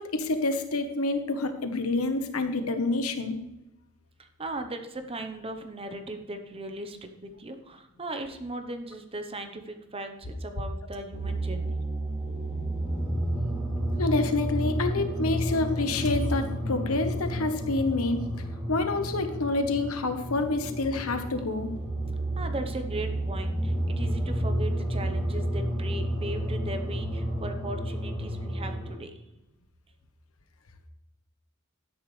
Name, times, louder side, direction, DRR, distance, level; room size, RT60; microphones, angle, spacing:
voice 1, 0.0-3.4 14.0-18.3 18.7-21.7, left 2 dB, 85° left, 7 dB, 1.2 m, -28 dB
voice 2, 4.2-11.8 22.4-29.2, right 1 dB, 25° right, 6 dB, 0.9 m, -38 dB
sound 1, 11.1-29.0, right 1 dB, ahead, 2.7 m, -31 dB
12.5 x 10.5 x 3.3 m, 0.94 s
head